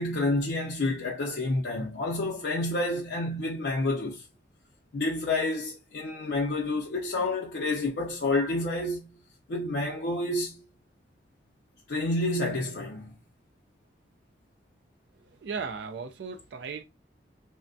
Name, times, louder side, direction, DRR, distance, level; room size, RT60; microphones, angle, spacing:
voice 1, 0.0-4.3 4.9-9.1 9.5-10.6 11.9-13.2, left 2 dB, 80° left, 0.5 m, -29 dB
voice 2, 15.2-16.8, right 5 dB, 80° right, 0.3 m, -37 dB
3.4 x 2.1 x 2.5 m
head